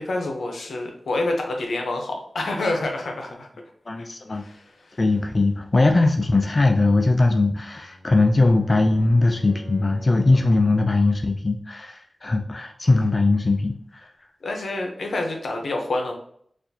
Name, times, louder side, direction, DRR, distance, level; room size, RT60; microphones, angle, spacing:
voice 1, 0.0-3.5 4.0-4.1 4.3-5.0 14.4-16.1, left 2 dB, 85° left, 2 dB, 0.7 m, -28 dB
voice 2, 3.9-4.4 5.0-14.1, left 2 dB, 45° left, 3 dB, 0.3 m, -20 dB
Bowed string instrument, 7.6-10.8, equal, 60° left, 1.5 m, -43 dB
4.1 x 2.4 x 2.7 m, 0.62 s
wide cardioid pair, 60°, 0 cm